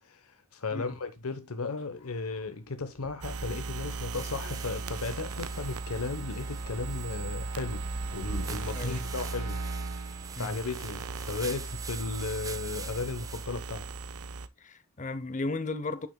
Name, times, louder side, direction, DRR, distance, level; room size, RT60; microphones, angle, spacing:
voice 1, 0.0-7.8 8.1-9.6 10.0-13.9, left 3 dB, 85° left, 0.9 m, -35 dB
sound 1, 1.7-9.0, left 2 dB, 65° left, 2.4 m, -57 dB
sound 2, 3.2-14.5, right 3 dB, 90° right, 0.7 m, -37 dB
sound 3, 4.1-13.5, right 5 dB, 15° right, 0.6 m, -46 dB
voice 2, 8.7-9.1 10.4-10.6 14.6-16.1, left 2 dB, 35° left, 0.7 m, -35 dB
8.7 x 7.0 x 2.2 m
head